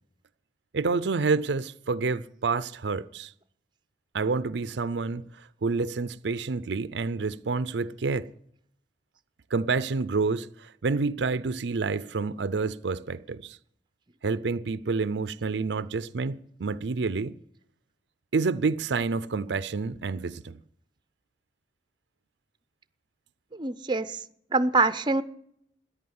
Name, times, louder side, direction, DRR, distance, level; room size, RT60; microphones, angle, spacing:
voice 1, 0.7-3.3 4.1-5.2 5.6-8.3 9.5-13.6 14.2-17.4 18.3-20.6, right 4 dB, 75° right, 0.5 m, -28 dB
voice 2, 23.6-24.2 24.5-25.2, right 3 dB, 25° right, 0.6 m, -24 dB
14.0 x 9.9 x 9.5 m
head